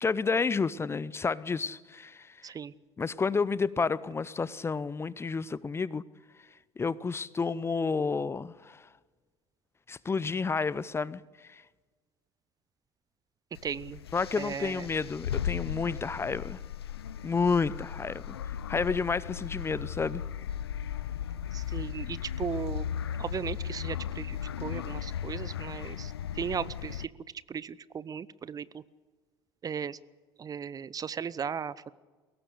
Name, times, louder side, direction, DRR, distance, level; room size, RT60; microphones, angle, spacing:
voice 1, 0.0-2.5 3.0-6.0 6.8-8.9 9.9-11.6 14.1-16.6 17.2-20.2, left 4 dB, 20° left, 21 dB, 0.7 m, -30 dB
voice 2, 2.4-2.7 13.6-14.0 14.4-14.9 21.5-22.9 23.2-27.1 27.5-28.8 29.6-30.0 30.4-31.9, right 7 dB, 30° right, 20 dB, 0.7 m, -36 dB
sound 1, 13.6-27.1, left 9 dB, 75° left, 0.6 m, -36 dB
23.0 x 18.0 x 8.1 m, 1.4 s
figure-of-eight pair, 65°, 13 cm